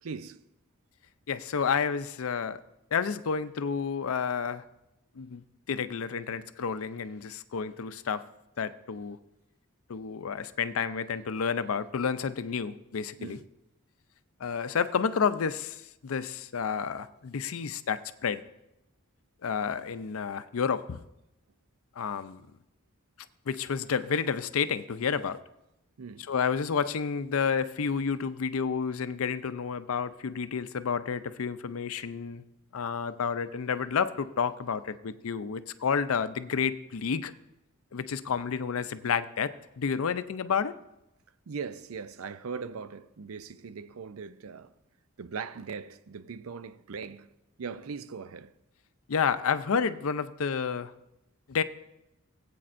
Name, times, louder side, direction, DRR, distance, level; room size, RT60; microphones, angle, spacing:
voice 1, 0.0-0.4 13.2-13.4 26.0-26.3 41.5-44.7 45.2-47.3 47.6-48.5, right 5 dB, 70° right, 0.5 m, -40 dB
voice 2, 1.3-2.6 2.9-4.6 5.2-8.2 8.6-9.2 9.9-13.4 14.4-18.4 19.4-21.0 22.0-22.4 23.5-25.4 26.2-32.4 32.7-37.3 37.9-40.7 49.1-50.9 51.5-51.6, left 6 dB, 70° left, 0.5 m, -30 dB
19.0 x 8.5 x 2.6 m
head